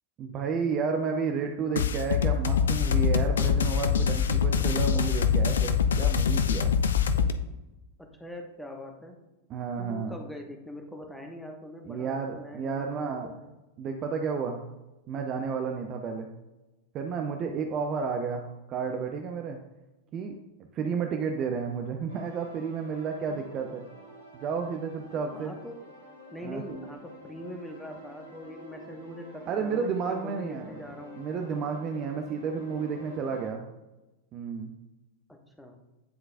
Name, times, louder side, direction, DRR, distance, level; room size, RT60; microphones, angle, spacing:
voice 1, 0.2-6.7 9.5-10.2 11.8-13.4 13.8-14.6 15.1-16.3 16.9-19.6 20.1-20.3 20.7-23.9 24.3-25.5 26.4-26.6 29.5-30.8 31.2-33.6 34.3-34.7, right 5 dB, 35° right, 3 dB, 0.5 m, -31 dB
sound 1, 1.8-7.3, left 7 dB, 65° left, 0.4 m, -24 dB
voice 2, 8.0-9.2 9.8-13.4 25.3-25.8 26.3-31.2 35.3-35.8, left 1 dB, 5° left, 2 dB, 0.9 m, -42 dB
sound 2, 22.1-33.5, equal, 75° right, 1.8 m, -48 dB
9.3 x 3.9 x 2.6 m, 1.0 s
figure-of-eight pair, 90°, 0 cm